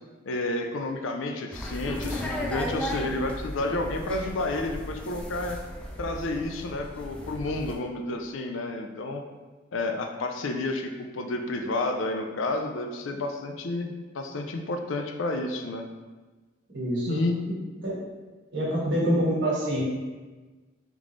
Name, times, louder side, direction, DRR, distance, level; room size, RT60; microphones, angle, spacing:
voice 1, 0.3-5.6 6.0-9.2 9.7-15.8 17.1-17.3, left 2 dB, 80° left, 4 dB, 0.5 m, -30 dB
sound 1, 1.5-7.7, equal, 5° left, 0.4 m, -35 dB
voice 2, 16.7-17.5 17.8-18.0 18.5-19.8, equal, 65° right, -6 dB, 1.5 m, -26 dB
3.7 x 3.5 x 3.2 m, 1.3 s
head